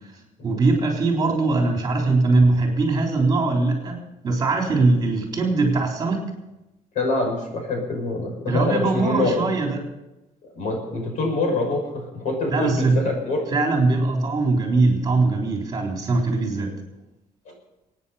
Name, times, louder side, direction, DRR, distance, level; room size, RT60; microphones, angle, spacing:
voice 1, 0.4-6.3 8.5-9.8 12.5-13.0 13.5-16.7, right 3 dB, 30° right, 1 dB, 3.6 m, -21 dB
voice 2, 6.9-9.3 10.5-13.4 17.5-17.6, left 2 dB, 60° left, 1 dB, 6.3 m, -25 dB
25.0 x 9.5 x 5.6 m, 0.96 s
cardioid pair, 165°, 14 cm